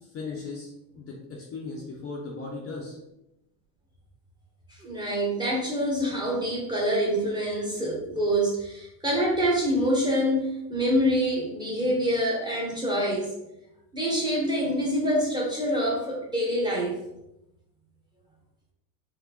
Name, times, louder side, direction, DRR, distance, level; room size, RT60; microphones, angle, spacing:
voice 1, 0.0-0.7 0.9-3.0, left 3 dB, 30° left, -3 dB, 0.6 m, -37 dB
voice 2, 4.8-13.3 13.9-17.0, equal, 10° right, -4 dB, 0.8 m, -26 dB
4.2 x 2.1 x 2.8 m, 0.86 s
supercardioid pair, 110°, 50 cm